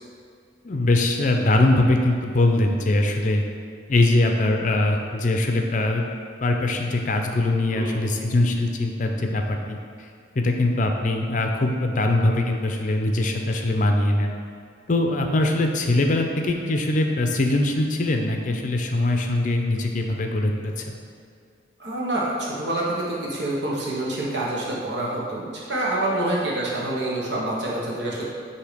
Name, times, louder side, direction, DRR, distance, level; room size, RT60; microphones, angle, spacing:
voice 1, 0.6-3.4 3.9-6.0 6.4-10.1 10.4-14.3 14.9-20.9, left 2 dB, 40° left, 3 dB, 0.5 m, -22 dB
voice 2, 7.7-8.2 21.8-28.3, right 1 dB, 65° right, -5 dB, 1.2 m, -27 dB
8.0 x 2.8 x 5.1 m, 2.2 s
head